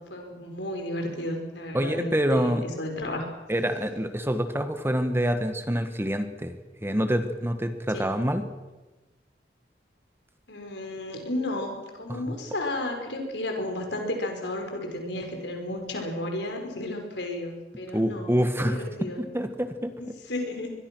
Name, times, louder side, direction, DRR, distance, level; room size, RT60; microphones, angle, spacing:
voice 1, 0.0-3.3 7.9-8.1 10.5-18.3 18.6-19.2 20.0-20.7, left 1 dB, 75° left, 3 dB, 5.4 m, -33 dB
voice 2, 1.7-2.6 3.5-6.5 6.8-8.4 12.1-12.3 17.9-20.1, equal, 15° right, 8 dB, 1.5 m, -26 dB
24.0 x 21.5 x 6.3 m, 1.1 s
head